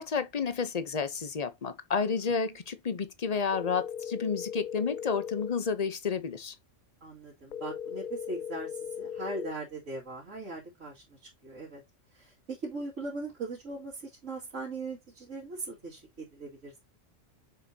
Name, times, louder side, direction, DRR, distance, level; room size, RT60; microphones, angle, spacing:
voice 1, 0.0-6.5, left 5 dB, 35° left, 0.8 m, -31 dB
sound 1, 3.5-5.5 7.5-9.5, left 8 dB, 60° left, 0.5 m, -38 dB
voice 2, 7.0-11.8 12.1-16.8, right 3 dB, 90° right, 2.8 m, -40 dB
7.0 x 5.2 x 2.8 m
omnidirectional pair, 1.3 m